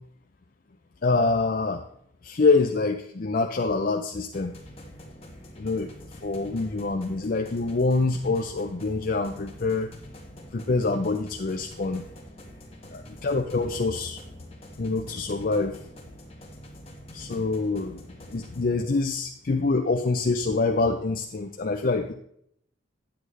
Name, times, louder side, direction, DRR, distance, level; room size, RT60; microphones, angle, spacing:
voice 1, 1.0-1.8 2.2-4.6 5.6-5.9 6.2-9.9 10.5-12.0 12.9-14.2 14.8-15.8 17.1-18.0 18.3-22.1, left 3 dB, 45° left, 3 dB, 0.5 m, -25 dB
sound 1, 4.3-18.6, equal, 30° left, 1.6 m, -46 dB
9.2 x 8.6 x 3.3 m, 0.70 s
head